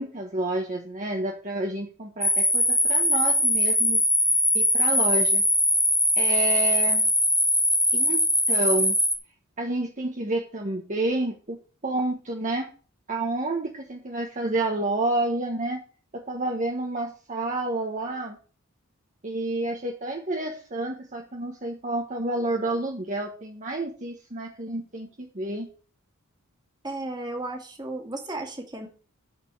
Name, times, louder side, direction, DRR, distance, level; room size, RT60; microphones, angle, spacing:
voice 1, 0.0-4.1 4.5-5.4 6.2-7.1 7.9-8.2 8.5-9.0 9.6-12.7 13.1-15.8 16.1-18.4 19.2-25.7, right 2 dB, 35° right, 0 dB, 1.3 m, -29 dB
sound 1, 2.2-9.2, left 1 dB, ahead, 1.0 m, -21 dB
voice 2, 26.8-28.9, right 2 dB, 20° right, 3 dB, 2.2 m, -34 dB
9.0 x 4.6 x 7.6 m, 0.39 s
head